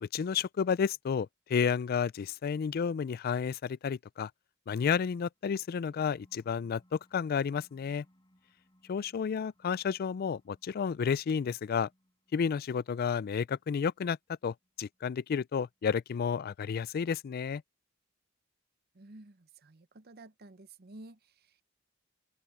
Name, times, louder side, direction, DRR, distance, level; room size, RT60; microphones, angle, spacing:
voice 1, 0.0-4.3 4.7-8.0 8.9-11.9 12.3-14.2 14.4-17.6, left 6 dB, 50° left, 0.3 m, -31 dB
sound 1, 5.3-16.3, equal, 20° left, 5.8 m, -70 dB
voice 2, 18.9-21.6, right 2 dB, 50° right, 0.9 m, -52 dB
open air
head